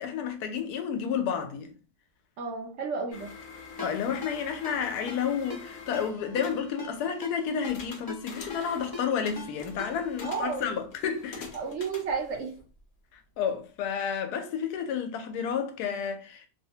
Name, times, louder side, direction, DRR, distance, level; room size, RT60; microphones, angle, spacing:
voice 1, 0.0-1.7 3.8-11.5 13.1-16.5, left 7 dB, 90° left, 1.1 m, -31 dB
voice 2, 2.4-3.4 10.2-10.7 11.5-12.6, right 5 dB, 70° right, 0.7 m, -32 dB
sound 1, 3.1-6.7 7.7-9.0 9.3-12.8, left 4 dB, 65° left, 0.9 m, -46 dB
Ringtone, 3.8-10.6, left 3 dB, 35° left, 0.3 m, -43 dB
2.8 x 2.0 x 2.7 m
omnidirectional pair, 1.6 m